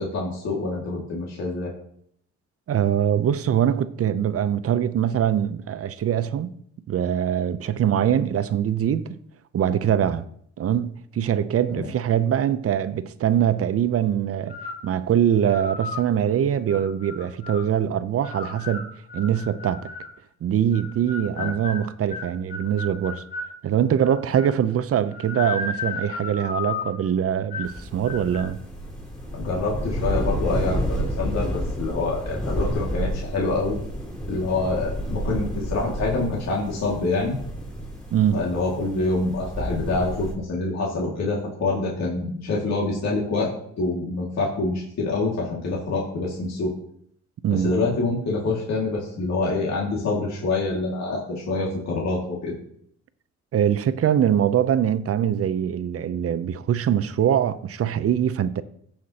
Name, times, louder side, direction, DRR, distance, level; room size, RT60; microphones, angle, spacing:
voice 1, 0.0-1.7 11.7-11.9 21.4-21.5 29.3-33.8 34.3-37.4 38.3-43.5 43.8-46.7 47.5-52.5, left 3 dB, 60° left, 2.2 m, -26 dB
voice 2, 2.7-6.5 6.9-9.1 9.5-10.2 10.6-14.6 14.8-18.9 19.1-19.9 20.4-23.2 23.6-28.6 38.1-38.4 47.4-47.7 53.5-58.6, right 9 dB, 50° right, 0.6 m, -23 dB
sound 1, 14.5-14.9 15.4-16.1 16.7-17.7 18.2-20.2 20.7-23.5 24.0-24.6 25.1-27.0 27.5-27.8 28.0-28.5, left 4 dB, 30° left, 2.0 m, -34 dB
sound 2, 27.6-40.3, equal, 5° left, 3.3 m, -30 dB
15.0 x 5.8 x 2.9 m
cardioid pair, 90°, 30 cm